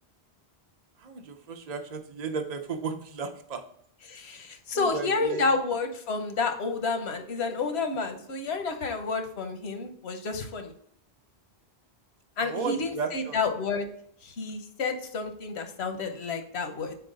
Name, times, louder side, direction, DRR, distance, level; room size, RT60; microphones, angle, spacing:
voice 1, 1.0-3.6 4.7-5.4 12.4-13.4, right 4 dB, 45° right, 5 dB, 0.7 m, -34 dB
voice 2, 4.1-10.7 12.4-13.9 14.2-17.0, left 4 dB, 80° left, 6 dB, 1.2 m, -30 dB
6.9 x 4.6 x 3.9 m, 0.65 s
omnidirectional pair, 1.1 m